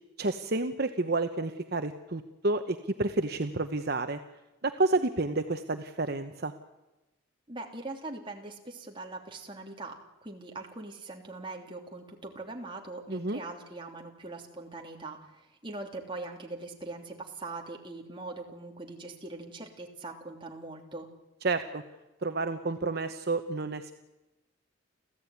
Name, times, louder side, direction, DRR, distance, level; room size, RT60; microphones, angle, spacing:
voice 1, 0.2-4.2 4.6-6.5 13.1-13.4 21.4-21.8 22.2-23.9, right 2 dB, 50° right, 7 dB, 1.0 m, -30 dB
voice 2, 7.5-21.1, right 2 dB, 25° right, 1 dB, 3.1 m, -42 dB
30.0 x 14.0 x 9.5 m, 1.0 s
head